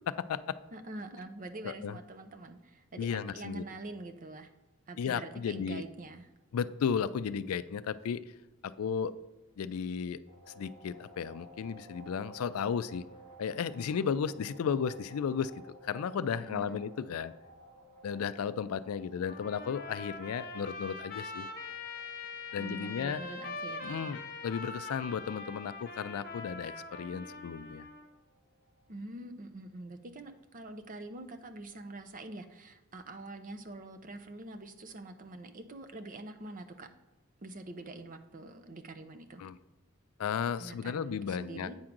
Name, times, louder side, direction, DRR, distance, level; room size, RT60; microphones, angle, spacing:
voice 1, 0.1-0.6 1.6-2.0 3.0-3.6 5.0-5.8 6.5-8.2 8.6-9.1 9.6-10.2 10.6-13.0 13.4-15.5 15.8-17.3 18.0-21.5 22.5-23.2 23.8-27.9 39.4-39.6 40.2-41.7, left 7 dB, 85° left, 15 dB, 0.4 m, -34 dB
voice 2, 0.7-4.5 4.9-6.3 16.5-16.8 22.6-24.2 28.9-36.9 37.4-39.4 40.6-41.7, right 2 dB, 40° right, 8 dB, 0.6 m, -45 dB
sound 1, 10.3-28.9, right 1 dB, 85° right, 2.3 m, -56 dB
Trumpet, 19.3-28.1, left 3 dB, 45° left, 0.9 m, -43 dB
8.8 x 3.7 x 5.9 m, 1.1 s
head